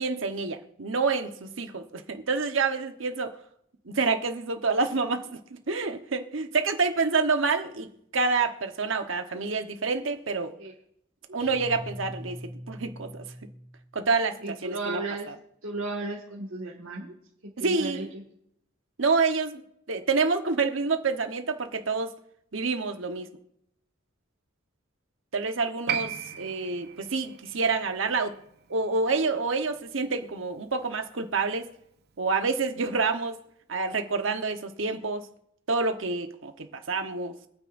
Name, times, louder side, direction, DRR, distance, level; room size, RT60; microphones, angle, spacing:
voice 1, 0.0-3.3 3.9-5.4 5.7-10.5 11.3-12.4 12.7-13.3 13.9-15.0 15.3-15.4 17.6-18.1 19.0-19.6 19.9-22.1 22.5-23.3 25.3-28.3 28.7-31.7 32.2-33.4 33.7-35.3 35.7-37.3, right 4 dB, 70° right, 7 dB, 1.1 m, -27 dB
sound 1, 11.4-13.9, equal, 30° left, 4.2 m, -42 dB
voice 2, 14.4-15.3 15.6-17.1 17.6-18.2, right 2 dB, 85° right, -3 dB, 1.8 m, -35 dB
Piano, 25.9-32.8 33.1-33.2, right 8 dB, 55° right, 0.8 m, -39 dB
26.0 x 9.4 x 2.6 m, 0.75 s
head